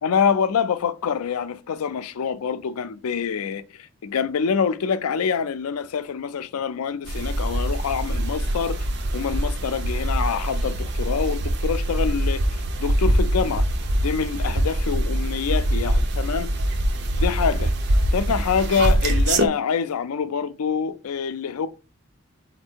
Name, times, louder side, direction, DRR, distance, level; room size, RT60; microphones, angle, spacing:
voice 1, 0.0-8.9 9.1-12.4 12.8-13.6 14.0-16.5 17.2-17.7 18.1-21.7, left 6 dB, 85° left, 0.4 m, -25 dB
sound 1, 7.1-19.5, right 1 dB, 50° right, 0.5 m, -23 dB
4.3 x 2.6 x 4.4 m
head